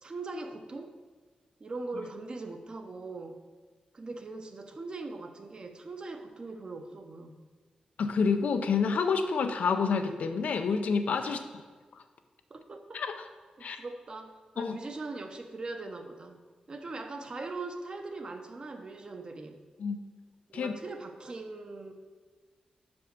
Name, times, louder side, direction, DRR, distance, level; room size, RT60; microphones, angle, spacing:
voice 1, 0.0-0.9 1.6-3.4 3.9-7.3 11.2-11.4 12.5-13.0 13.6-19.6 20.5-21.9, right 3 dB, 40° right, 6 dB, 0.7 m, -41 dB
voice 2, 8.0-11.4 12.9-13.2 13.6-13.8 14.6-14.8 19.8-20.0 20.5-20.7, left 5 dB, 90° left, 7 dB, 0.6 m, -28 dB
5.7 x 5.3 x 6.7 m, 1.4 s
wide cardioid pair, 125°, 2 cm